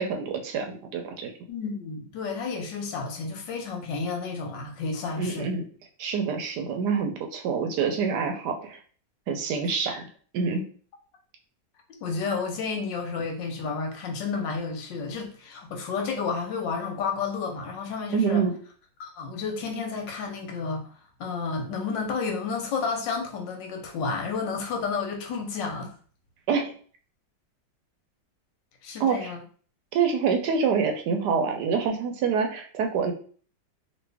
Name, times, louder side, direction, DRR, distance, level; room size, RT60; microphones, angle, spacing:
voice 1, 0.0-1.3 5.2-5.6 6.0-8.8 9.3-10.0 10.3-10.6 18.1-18.6 26.5-26.7 29.0-29.3 29.9-33.1, right 6 dB, 75° right, 4 dB, 1.1 m, -26 dB
voice 2, 1.5-5.5 9.9-10.0 12.0-18.4 19.0-20.9 21.2-25.9 28.8-29.4, left 5 dB, 80° left, 3 dB, 1.5 m, -31 dB
3.1 x 2.7 x 3.3 m, 0.43 s
omnidirectional pair, 1.9 m